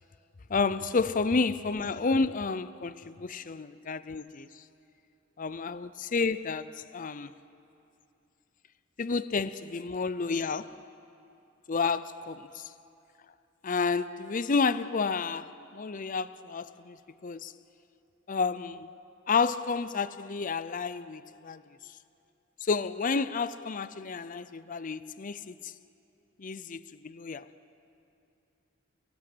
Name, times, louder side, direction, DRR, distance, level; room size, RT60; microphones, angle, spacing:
voice 1, 0.5-4.6 5.4-7.3 9.0-10.7 11.7-12.7 13.6-17.0 17.2-17.5 18.3-18.9 19.3-21.6 22.6-25.7 26.4-27.5, left 4 dB, 40° left, 0.5 m, -30 dB
29.5 x 19.0 x 8.0 m
head